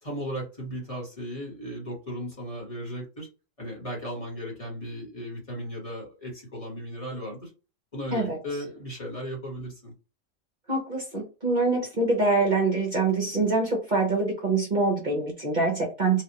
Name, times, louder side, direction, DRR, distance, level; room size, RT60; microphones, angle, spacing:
voice 1, 0.0-3.3 3.6-7.5 7.9-9.9, equal, 30° left, -2 dB, 1.3 m, -36 dB
voice 2, 10.7-16.2, right 3 dB, 45° right, 0 dB, 0.8 m, -25 dB
3.5 x 2.3 x 2.8 m, 0.31 s
omnidirectional pair, 1.3 m